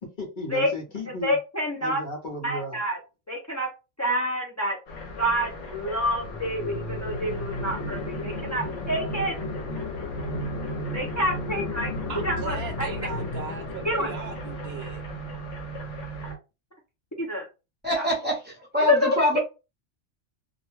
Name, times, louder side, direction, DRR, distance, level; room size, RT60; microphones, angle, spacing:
voice 1, 0.0-1.4 1.8-2.8, left 2 dB, 45° left, 0.8 m, -35 dB
voice 2, 1.2-2.0 2.4-3.0 3.3-3.7 4.0-4.8 5.2-9.3 10.9-11.9 12.2-12.6 13.8-14.1 16.2-16.3 17.2-17.5 17.9-18.1 18.8-19.3, equal, 25° left, 0.4 m, -27 dB
sound 1, 4.9-16.3, left 1 dB, 75° left, 1.0 m, -33 dB
voice 3, 12.1-15.0, right 5 dB, 65° right, 0.7 m, -37 dB
voice 4, 17.8-19.4, equal, 10° right, 0.8 m, -25 dB
2.4 x 2.2 x 3.0 m
omnidirectional pair, 1.3 m